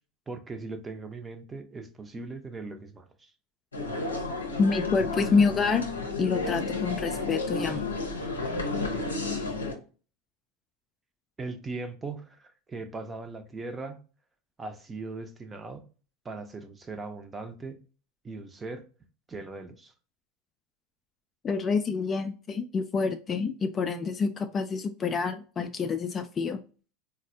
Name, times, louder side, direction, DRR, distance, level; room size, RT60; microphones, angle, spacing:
voice 1, 0.3-3.3 11.4-14.0 14.6-15.8 16.2-17.8 18.2-18.8 19.3-19.9, right 3 dB, 20° right, 0.6 m, -39 dB
sound 1, 3.7-9.7, left 3 dB, 85° left, 0.6 m, -32 dB
voice 2, 4.6-5.9 6.2-7.9 21.4-26.6, left 4 dB, 30° left, 0.3 m, -27 dB
4.0 x 2.1 x 2.5 m
figure-of-eight pair, 80°, 0 cm